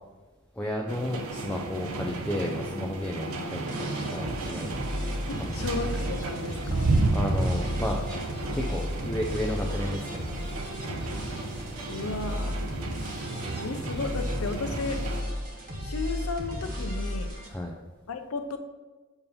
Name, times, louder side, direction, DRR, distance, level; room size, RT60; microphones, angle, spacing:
voice 1, 0.5-4.8 5.3-5.8 6.6-8.0 8.5-10.4 13.0-13.1 17.5-17.7, left 1 dB, 5° left, -1 dB, 0.3 m, -33 dB
sound 1, 0.9-15.2, right 2 dB, 85° right, 0.6 m, -32 dB
voice 2, 3.3-3.7 5.3-7.0 11.9-12.6 13.6-15.0 15.8-17.3 18.1-18.6, left 3 dB, 80° left, 7 dB, 0.6 m, -34 dB
sound 2, 3.7-17.5, equal, 40° right, 1.2 m, -34 dB
6.9 x 2.8 x 5.5 m, 1.3 s
head